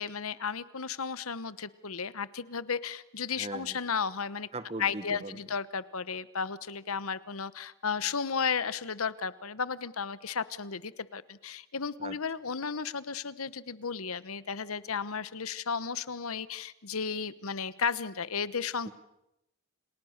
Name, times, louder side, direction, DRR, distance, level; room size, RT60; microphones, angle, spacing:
voice 1, 0.0-4.5 4.8-18.9, left 6 dB, 85° left, 16 dB, 1.1 m, -34 dB
voice 2, 3.4-3.8 4.5-5.4 12.0-12.2 18.9-19.0, right 2 dB, 30° right, 13 dB, 1.3 m, -39 dB
29.5 x 29.0 x 6.6 m, 0.88 s
head